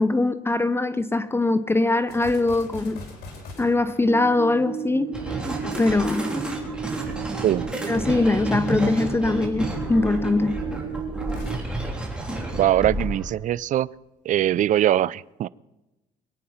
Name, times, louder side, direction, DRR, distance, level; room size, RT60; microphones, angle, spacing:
voice 1, 0.0-3.0 3.6-5.1 5.8-6.3 7.9-10.6, left 2 dB, 15° left, 0.6 m, -22 dB
sound 1, 2.1-5.5 11.2-13.3, left 3 dB, 70° left, 4.2 m, -43 dB
sound 2, 4.0-11.5, right 8 dB, 65° right, 1.3 m, -34 dB
sound 3, 5.1-13.3, right 1 dB, 5° right, 3.6 m, -31 dB
voice 2, 12.5-13.9 14.3-15.5, right 12 dB, 50° right, 0.4 m, -21 dB
24.0 x 9.0 x 5.7 m
cardioid pair, 110°, 17 cm